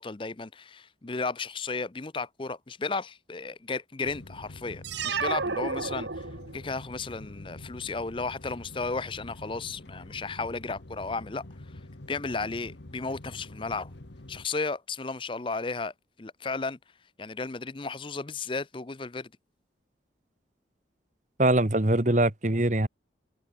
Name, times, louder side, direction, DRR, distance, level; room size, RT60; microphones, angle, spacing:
voice 1, 0.0-6.2 6.5-11.5 12.1-13.9 14.3-15.9 16.2-16.8 17.2-19.3, left 4 dB, 30° left, 0.6 m, -34 dB
sound 1, 4.0-14.5, left 1 dB, 75° left, 1.6 m, -46 dB
sound 2, 4.8-6.7, right 4 dB, 75° right, 1.5 m, -31 dB
voice 2, 21.4-22.9, right 1 dB, 40° right, 1.5 m, -23 dB
head